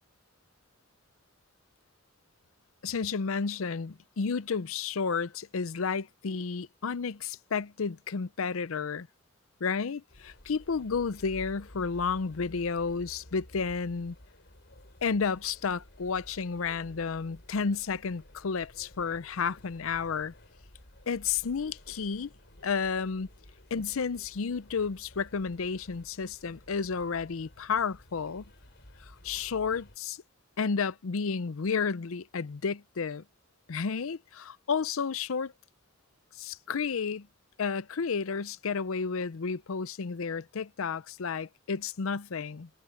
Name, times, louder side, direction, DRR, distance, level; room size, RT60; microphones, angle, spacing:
voice 1, 2.8-9.1 9.6-14.2 15.0-20.3 21.1-22.3 22.6-23.3 23.7-28.4 29.0-30.2 30.6-33.2 33.7-35.5 36.4-37.3 37.6-42.7, left 5 dB, 75° left, 0.6 m, -31 dB
sound 1, 10.1-30.0, left 1 dB, 55° left, 3.9 m, -53 dB
head